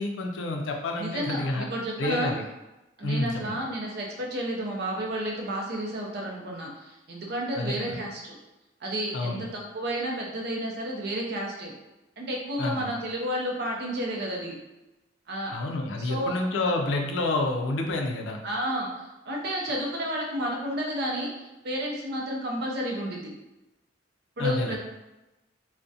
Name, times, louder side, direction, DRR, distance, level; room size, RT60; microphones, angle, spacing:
voice 1, 0.0-1.7 2.0-2.4 3.0-3.6 7.6-8.0 9.1-9.5 12.6-12.9 15.5-18.4 24.4-24.8, left 2 dB, 85° left, 3 dB, 0.4 m, -29 dB
voice 2, 1.0-2.3 3.0-8.4 8.8-11.7 12.2-14.6 15.3-15.6 16.0-16.3 18.4-23.3 24.4-24.8, right 1 dB, 60° right, -1 dB, 0.5 m, -31 dB
2.4 x 2.1 x 2.6 m, 1.0 s
head